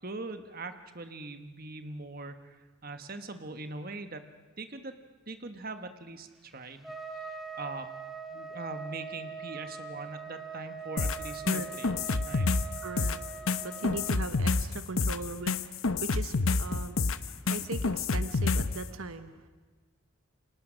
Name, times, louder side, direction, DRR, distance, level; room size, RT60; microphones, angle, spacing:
voice 1, 0.0-4.3 4.6-4.9 5.3-7.9 8.3-12.5, right 3 dB, 40° right, 8 dB, 1.2 m, -42 dB
Trumpet, 6.8-14.2, right 6 dB, ahead, 1.8 m, -42 dB
sound 1, 11.0-18.8, left 3 dB, 70° left, 0.9 m, -28 dB
voice 2, 12.8-13.2 13.5-15.6 16.0-19.5, right 3 dB, 75° right, 10 dB, 1.2 m, -39 dB
29.0 x 25.5 x 6.3 m, 1.3 s
head